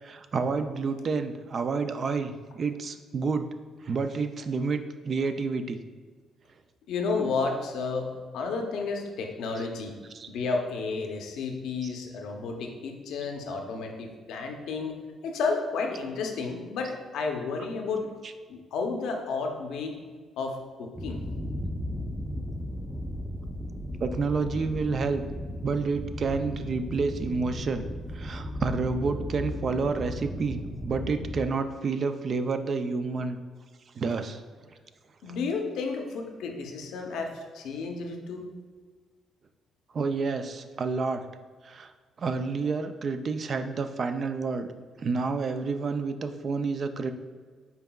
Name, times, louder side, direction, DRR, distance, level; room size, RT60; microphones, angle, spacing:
voice 1, 0.0-3.5 3.8-4.8 5.0-5.8 9.6-9.7 10.1-10.3 11.8-12.0 17.6-17.7 18.2-18.3 24.0-25.2 25.6-27.9 28.1-33.4 34.0-34.4 39.9-41.2 41.6-41.9 42.2-44.7 45.0-47.1, right 4 dB, 50° right, 9 dB, 0.3 m, -29 dB
voice 2, 6.9-9.9 10.3-15.0 15.2-18.1 18.5-19.9 20.4-21.2 35.2-38.5, left 4 dB, 80° left, 3 dB, 0.6 m, -32 dB
sound 1, 21.0-31.5, left 1 dB, 5° right, 0.6 m, -35 dB
5.7 x 4.0 x 2.3 m, 1.5 s
cardioid pair, 90°, 0 cm